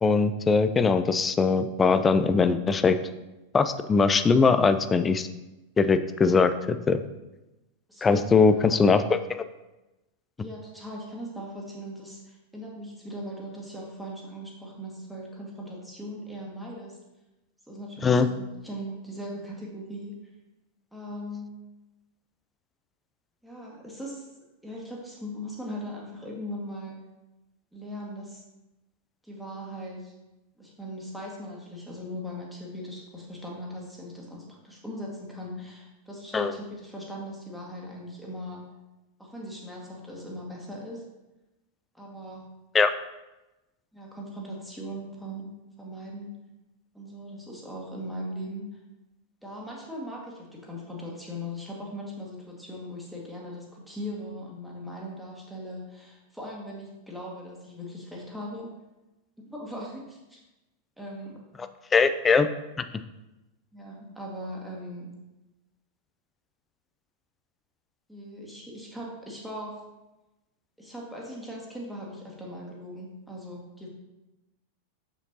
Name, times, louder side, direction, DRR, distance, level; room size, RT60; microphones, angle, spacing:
voice 1, 0.0-3.0 3.5-5.3 5.8-7.0 8.0-9.4 18.0-18.3 36.3-36.5 42.7-42.9 61.9-62.5, left 4 dB, 15° left, 11 dB, 0.4 m, -21 dB
voice 2, 7.9-8.9 10.4-17.0 17.7-20.2 20.9-21.5 23.4-27.0 27.7-28.4 29.2-30.1 30.6-38.6 39.2-41.0 41.9-42.5 43.9-46.4 46.9-48.8 49.4-58.7 59.5-60.4 61.0-61.4 63.7-65.1 68.1-69.8 70.8-73.9, equal, ahead, -3 dB, 1.8 m, -39 dB
7.1 x 6.7 x 2.8 m, 1.0 s
figure-of-eight pair, 90°, 0 cm